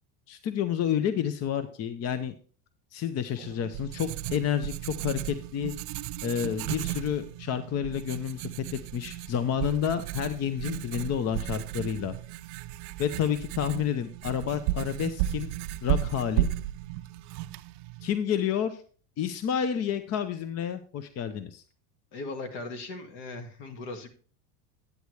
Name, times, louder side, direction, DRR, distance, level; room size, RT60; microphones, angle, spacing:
voice 1, 0.3-2.3 2.9-5.7 6.2-8.5 8.9-12.1 13.0-15.5 15.8-16.5 18.0-18.8 19.2-21.6, left 9 dB, 35° left, 11 dB, 0.7 m, -30 dB
Writing, 3.3-18.1, right 13 dB, 75° right, 0.6 m, -34 dB
voice 2, 22.1-24.1, left 3 dB, 65° left, 6 dB, 2.0 m, -38 dB
10.0 x 8.3 x 3.2 m, 0.42 s
supercardioid pair, 115°, 45 cm